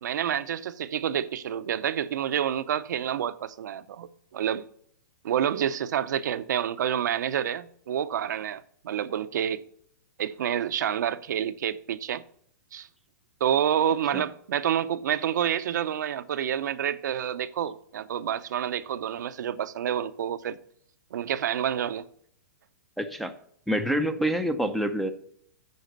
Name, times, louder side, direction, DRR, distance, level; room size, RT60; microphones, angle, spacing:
voice 1, 0.0-4.7 5.2-9.6 10.2-12.2 12.7-12.9 13.4-20.6 21.1-22.1, right 9 dB, 70° right, 0.6 m, -28 dB
voice 2, 23.0-23.3 23.7-25.1, equal, ahead, 0.5 m, -27 dB
9.3 x 5.0 x 6.6 m
hypercardioid pair, 150°, 10 cm